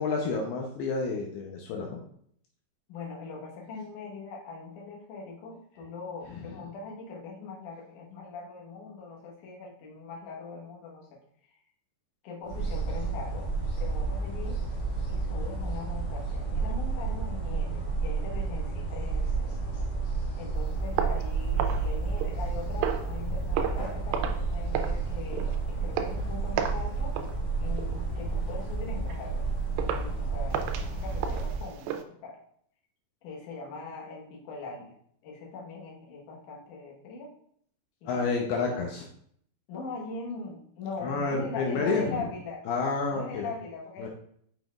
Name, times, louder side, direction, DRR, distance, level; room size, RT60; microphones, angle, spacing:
voice 1, 0.0-2.0 38.1-39.1 41.0-42.2 42.7-43.5 44.0-44.1, left 4 dB, 80° left, 1 dB, 2.6 m, -29 dB
voice 2, 2.9-11.2 11.5-11.6 12.2-13.5 13.8-14.6 15.1-19.6 20.4-27.2 27.6-29.4 29.8-32.4 33.2-34.9 35.2-37.3 38.0-38.8 39.7-42.7 43.1-44.1, left 4 dB, 65° left, -2 dB, 2.2 m, -41 dB
sound 1, 12.4-31.6, right 4 dB, 50° left, 1.9 m, -31 dB
sound 2, 21.0-22.5 22.8-23.2 23.5-23.9 24.1-24.5 24.7-25.0 25.3-25.6 26.0-26.2 26.6-26.9 27.1-27.4 27.8-28.0 28.5-28.6 29.1-29.2 29.8-30.1 30.5-32.0, right 8 dB, 90° right, 2.7 m, -32 dB
6.8 x 5.9 x 2.4 m, 0.65 s
omnidirectional pair, 4.8 m